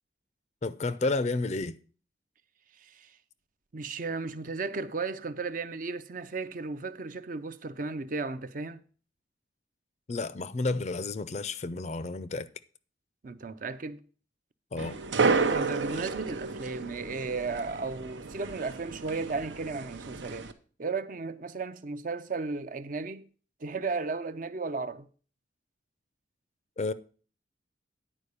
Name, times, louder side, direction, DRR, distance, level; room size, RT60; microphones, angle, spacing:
voice 1, 0.6-1.7 10.1-12.5 14.7-15.0 26.8-26.9, left 3 dB, 40° left, 0.4 m, -31 dB
voice 2, 2.8-3.2 3.7-8.8 13.2-14.0 15.4-20.5 20.8-23.3 23.6-25.1, right 4 dB, 45° right, 0.5 m, -35 dB
sound 1, 14.8-20.5, right 4 dB, 85° right, 0.8 m, -31 dB
9.9 x 4.7 x 6.7 m
head